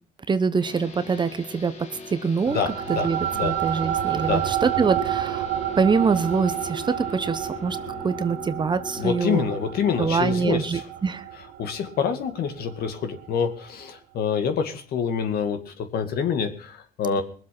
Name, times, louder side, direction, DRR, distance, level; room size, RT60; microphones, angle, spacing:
voice 1, 0.3-2.6 2.9-5.4 5.8-7.8 8.0-9.4 10.0-11.2 17.1-17.2, right 5 dB, 25° right, 13 dB, 1.0 m, -24 dB
sound 1, 0.6-10.4, left 3 dB, 40° left, 2.9 m, -41 dB
voice 2, 2.5-3.5 4.3-4.4 9.0-10.8 11.6-17.2, left 6 dB, 65° left, 7 dB, 2.4 m, -27 dB
sound 2, 2.5-13.3, right 12 dB, 85° right, 1.3 m, -30 dB
21.0 x 7.7 x 6.0 m, 0.42 s
cardioid pair, 110°, 17 cm